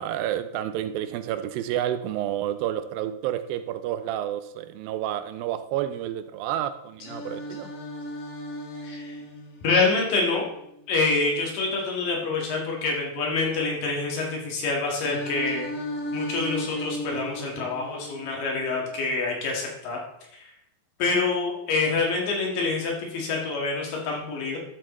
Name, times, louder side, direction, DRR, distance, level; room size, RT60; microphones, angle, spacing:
voice 1, 0.0-7.7, right 11 dB, 90° right, 11 dB, 2.4 m, -30 dB
Singing, 7.0-11.0 15.0-19.0, left 1 dB, 55° left, 1.9 m, -36 dB
voice 2, 8.8-9.2 9.6-10.4 10.9-15.7 16.1-20.0 20.3-20.5 21.0-24.6, left 3 dB, 75° left, -1 dB, 3.4 m, -26 dB
12.0 x 7.7 x 3.1 m, 0.79 s
omnidirectional pair, 4.0 m